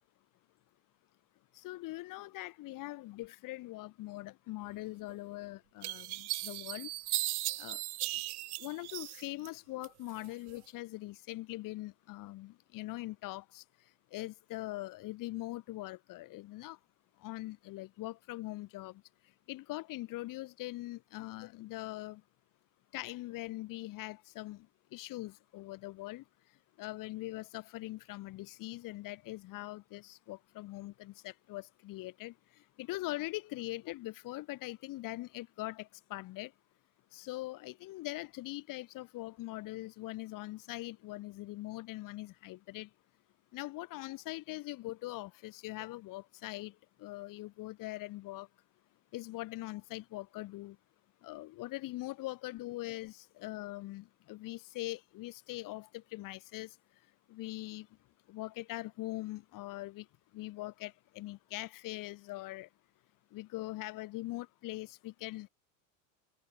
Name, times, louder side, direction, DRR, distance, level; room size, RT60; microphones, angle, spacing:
voice 1, 1.5-6.9 7.6-7.8 8.6-13.6 14.1-16.8 17.2-19.0 19.5-22.2 22.9-24.7 24.9-26.2 26.8-32.3 32.8-36.5 37.1-42.9 43.5-46.7 47.0-48.5 49.1-50.8 51.2-56.7 57.3-57.9 58.3-60.1 60.3-62.7 63.3-65.5, left 18 dB, 50° left, 2.7 m, -42 dB
sound 1, 5.1-5.2 5.8-9.5 9.8-10.6, right 17 dB, 85° right, 1.4 m, -37 dB
supercardioid pair, 115°, 43 cm